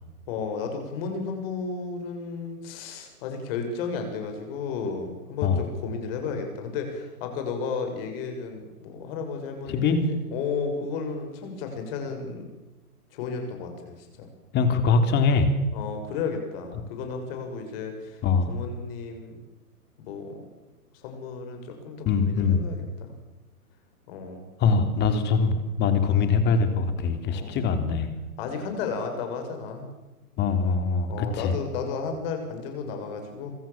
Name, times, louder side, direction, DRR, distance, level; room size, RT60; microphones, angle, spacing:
voice 1, 0.3-12.5 13.1-14.3 15.7-18.2 18.5-19.4 20.0-20.4 21.0-23.1 24.1-24.5 27.3-27.6 28.4-29.9 31.1-33.5, left 5 dB, 40° left, 5 dB, 7.1 m, -33 dB
voice 2, 9.7-10.0 14.5-15.5 16.8-16.9 18.2-18.5 22.0-22.7 24.6-28.1 30.4-31.6, left 5 dB, 25° left, 8 dB, 3.6 m, -23 dB
26.0 x 25.0 x 7.6 m, 1.1 s
figure-of-eight pair, 125°, 45 cm